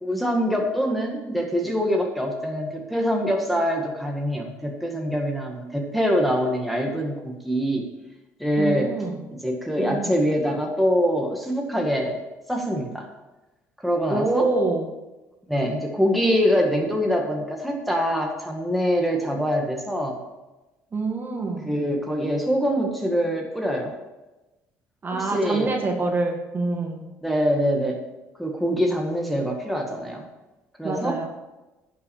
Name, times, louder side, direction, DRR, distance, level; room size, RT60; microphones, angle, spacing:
voice 1, 0.0-7.8 8.4-8.9 9.3-12.2 12.5-13.1 13.8-14.5 15.5-20.2 21.6-23.9 25.1-25.7 27.2-28.0 28.4-30.2 30.8-31.2, equal, ahead, 0 dB, 1.9 m, -24 dB
voice 2, 8.6-9.2 9.8-10.1 14.1-14.9 20.9-21.7 25.0-27.0 30.8-31.3, right 3 dB, 30° right, 2 dB, 1.9 m, -26 dB
11.0 x 5.8 x 7.1 m, 1.1 s
cardioid pair, 90°, 6 cm